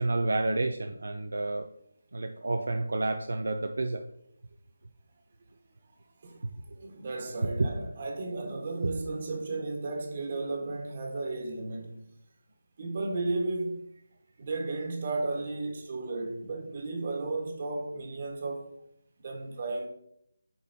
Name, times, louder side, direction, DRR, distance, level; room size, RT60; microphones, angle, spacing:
voice 1, 0.0-1.7 2.1-4.0 7.6-7.7 8.8-8.9, right 2 dB, 70° right, 0.5 m, -29 dB
voice 2, 6.8-12.0 12.8-13.9 14.4-18.7 19.2-19.9, right 2 dB, 40° right, 1.4 m, -34 dB
9.3 x 4.1 x 2.7 m
figure-of-eight pair, 160°, 0 cm